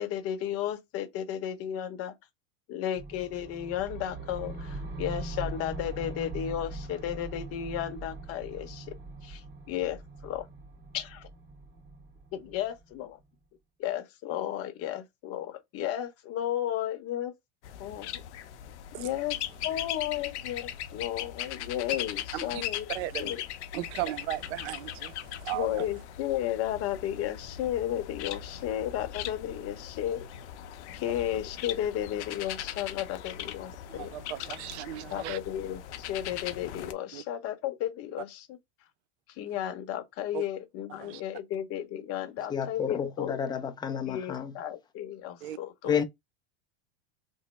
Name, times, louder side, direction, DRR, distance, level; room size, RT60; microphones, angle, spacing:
voice 1, 0.0-2.1 2.7-8.9 9.2-10.5 10.9-11.3 12.3-13.2 13.8-17.3 17.8-18.2 19.0-19.4 19.6-23.4 25.5-30.3 30.9-34.1 35.1-35.8 36.1-38.6 39.4-43.4 44.1-46.0, left 11 dB, 45° left, 0.8 m, -34 dB
sound 1, 2.9-13.0, right 2 dB, 30° right, 1.4 m, -41 dB
sound 2, 17.6-36.9, left 11 dB, 85° left, 0.6 m, -39 dB
voice 2, 22.9-23.4 23.7-25.9 33.9-35.4 37.1-37.2 40.3-40.4 41.0-41.2 45.4-45.6 45.8-46.0, right 14 dB, 75° right, 0.5 m, -36 dB
voice 3, 42.5-44.6 45.9-46.0, left 7 dB, 15° left, 0.4 m, -30 dB
3.1 x 2.0 x 4.1 m
supercardioid pair, 125°, 33 cm